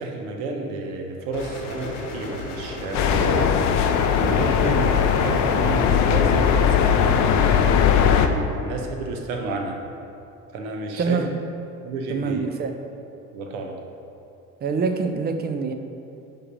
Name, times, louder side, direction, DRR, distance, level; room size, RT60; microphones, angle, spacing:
voice 1, 0.0-9.8 10.5-11.2 11.8-12.5 13.3-13.8, right 3 dB, 60° right, 3 dB, 1.1 m, -31 dB
sound 1, 1.3-5.7, left 2 dB, 75° left, 1.3 m, -33 dB
sound 2, 2.9-8.3, left 7 dB, 40° left, 0.6 m, -19 dB
voice 2, 11.0-11.3 12.1-12.8 14.6-15.7, right 4 dB, 20° right, 7 dB, 0.6 m, -25 dB
9.7 x 3.7 x 5.2 m, 2.7 s
figure-of-eight pair, 60°, 46 cm